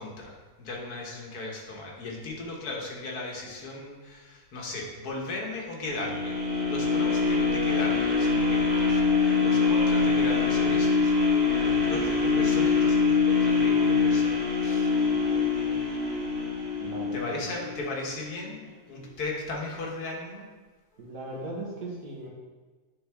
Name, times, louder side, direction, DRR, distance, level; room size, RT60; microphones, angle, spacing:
voice 1, 0.0-14.9 17.1-20.5, left 2 dB, 85° left, -1 dB, 1.7 m, -37 dB
sound 1, 5.9-18.0 18.4-18.5, left 4 dB, 30° right, 1.3 m, -24 dB
voice 2, 15.4-15.8 16.8-17.6 21.0-22.3, right 2 dB, 80° right, -4 dB, 1.9 m, -39 dB
9.5 x 3.8 x 3.4 m, 1.3 s
omnidirectional pair, 1.6 m